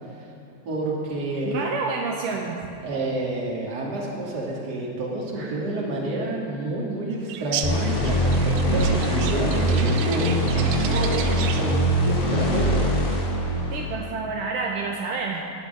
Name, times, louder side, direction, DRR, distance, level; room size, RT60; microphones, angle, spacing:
voice 1, 0.6-1.6 2.8-10.4 10.8-12.8, right 2 dB, 35° right, -4 dB, 2.2 m, -29 dB
voice 2, 1.5-2.6 5.3-5.6 13.7-15.4, right 4 dB, 75° right, 1 dB, 2.2 m, -29 dB
sound 1, 7.3-11.8, right 9 dB, 90° right, 2.5 m, -34 dB
sound 2, 7.6-14.1, right 1 dB, 30° left, 1.6 m, -22 dB
14.5 x 6.4 x 9.2 m, 2.6 s
omnidirectional pair, 4.1 m